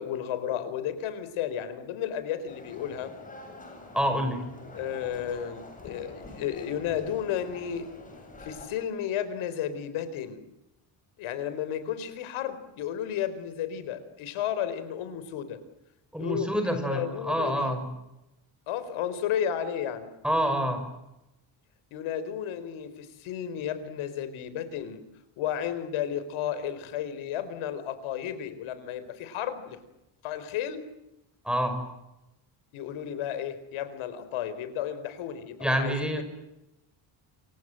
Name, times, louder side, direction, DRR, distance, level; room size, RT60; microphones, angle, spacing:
voice 1, 0.0-3.1 4.7-7.9 8.4-10.4 11.2-15.6 16.2-17.8 18.7-20.1 21.9-25.0 25.4-29.8 30.2-30.9 32.7-36.2, left 9 dB, 85° left, 12 dB, 4.4 m, -33 dB
sound 1, 2.5-8.7, left 2 dB, 15° left, 7.8 m, -46 dB
voice 2, 3.9-4.5 16.1-17.8 20.2-20.9 31.4-31.8 35.6-36.2, equal, ahead, 6 dB, 5.6 m, -27 dB
28.0 x 25.0 x 7.7 m, 0.92 s
cardioid pair, 175°, 48 cm